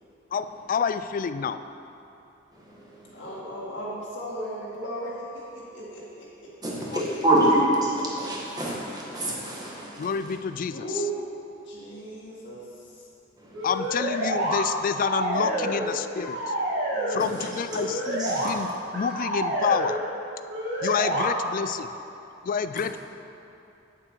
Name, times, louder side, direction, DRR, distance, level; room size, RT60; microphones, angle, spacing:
voice 1, 0.3-1.6 6.9-7.0 10.0-10.8 13.6-16.4 17.1-20.0 20.8-21.9 22.4-23.0, left 6 dB, 45° left, 11 dB, 0.3 m, -28 dB
voice 2, 2.5-3.2 6.6-7.6 8.0-10.1 13.4-13.6 17.4-17.5 18.2-18.8, right 1 dB, 20° right, -5 dB, 1.6 m, -27 dB
voice 3, 3.1-6.5 7.4-7.5 8.0-8.1 8.4-8.6 9.1-9.8 10.7-13.1 15.3-15.8 16.9-17.2 20.8-21.1, right 1 dB, 65° left, -7 dB, 1.9 m, -37 dB
sound 1, 13.5-14.6 14.9-15.9 16.2-17.2 17.7-18.5 18.9-19.9 20.5-21.3, right 1 dB, 65° right, 2.2 m, -28 dB
9.1 x 7.3 x 4.6 m, 2.8 s
head